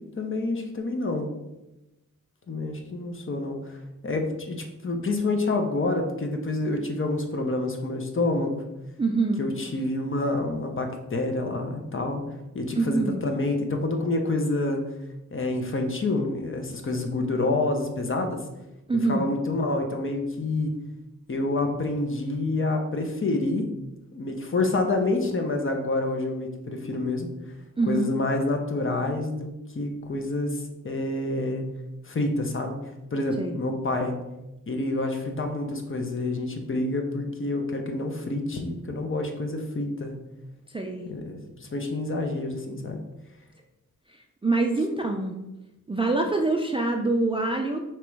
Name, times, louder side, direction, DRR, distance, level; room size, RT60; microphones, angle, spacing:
voice 1, 0.2-1.3 2.5-3.8 4.0-8.6 9.4-12.2 12.5-14.8 15.3-18.4 19.1-20.7 21.3-23.7 24.1-27.3 27.8-31.6 32.0-32.8 33.1-34.1 34.7-40.1 41.1-43.0, left 2 dB, 35° left, 4 dB, 0.6 m, -28 dB
voice 2, 9.0-9.4 12.8-13.2 18.9-19.3 27.8-28.1 33.4-33.6 40.7-41.1 44.4-45.4 45.9-47.8, right 3 dB, 15° right, 2 dB, 0.3 m, -25 dB
3.0 x 3.0 x 4.6 m, 0.96 s
wide cardioid pair, 105°, 34 cm